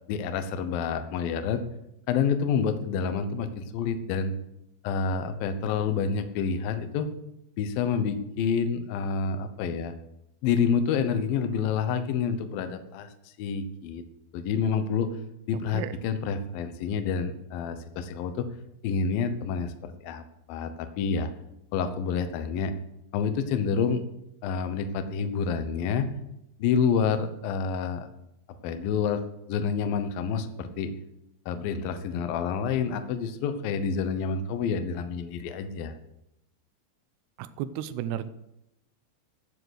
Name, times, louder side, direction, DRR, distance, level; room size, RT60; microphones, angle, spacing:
voice 1, 0.1-1.6 2.1-4.3 4.8-7.1 7.6-9.9 10.4-13.1 13.4-14.0 14.3-15.1 15.5-18.5 18.8-20.2 20.5-21.3 21.7-22.7 23.1-24.0 24.4-26.1 26.6-28.1 28.6-29.2 29.5-30.9 31.5-35.9, left 6 dB, 85° left, 8 dB, 2.0 m, -28 dB
voice 2, 37.4-38.3, right 11 dB, 90° right, 12 dB, 2.4 m, -33 dB
14.5 x 7.8 x 6.4 m, 0.84 s
omnidirectional pair, 5.7 m